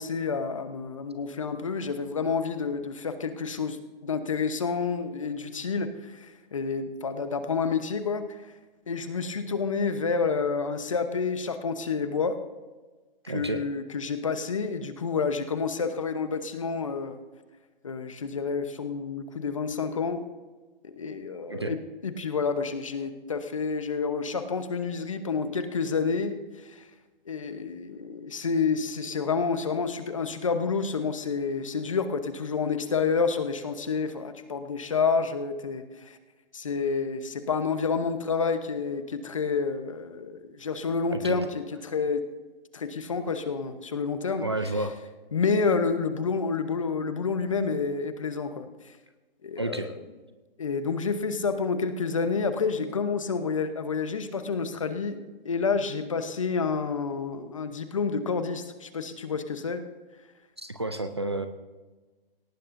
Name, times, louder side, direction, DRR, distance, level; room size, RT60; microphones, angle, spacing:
voice 1, 0.0-8.4 8.9-12.4 13.3-17.2 17.8-20.2 20.8-21.8 22.0-26.4 26.6-26.8 27.3-36.2 36.5-42.2 42.7-44.4 45.3-48.7 49.4-49.9 50.6-55.2 55.4-59.8, left 5 dB, 35° left, 9 dB, 0.9 m, -29 dB
voice 2, 13.2-13.6 21.5-21.8 41.1-41.4 44.4-45.0 49.6-49.9 60.6-61.5, right 2 dB, 30° right, 9 dB, 0.5 m, -30 dB
18.5 x 16.0 x 2.6 m, 1.3 s
hypercardioid pair, 180°, 30 cm